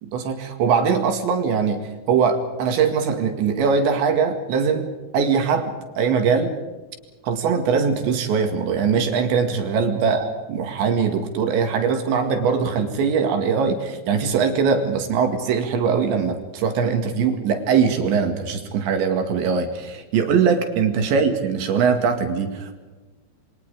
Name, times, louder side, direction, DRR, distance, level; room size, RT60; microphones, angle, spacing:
voice 1, 0.0-6.6 7.2-22.7, right 6 dB, 70° right, 5 dB, 4.2 m, -21 dB
28.5 x 24.0 x 5.0 m, 1.2 s
omnidirectional pair, 5.7 m